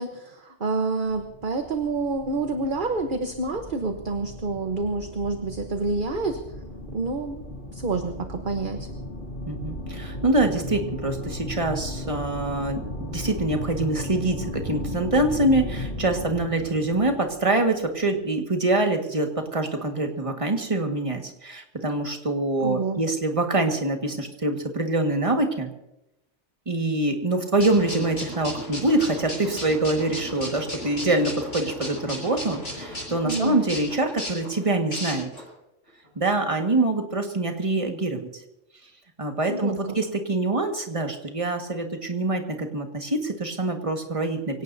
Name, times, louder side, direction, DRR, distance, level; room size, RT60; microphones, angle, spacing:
voice 1, 0.0-6.4 6.9-7.4 7.7-8.9 22.6-23.0 33.2-33.6 39.5-39.7, right 3 dB, 45° right, 5 dB, 1.2 m, -28 dB
sound 1, 1.0-18.1, left 1 dB, 65° left, 3.1 m, -36 dB
voice 2, 9.4-25.7 26.7-35.3 36.2-38.3 39.2-44.6, right 2 dB, 25° right, 3 dB, 1.8 m, -25 dB
sound 2, 27.6-35.5, left 1 dB, 85° left, 7.7 m, -35 dB
24.5 x 17.5 x 2.7 m, 0.89 s
omnidirectional pair, 1.2 m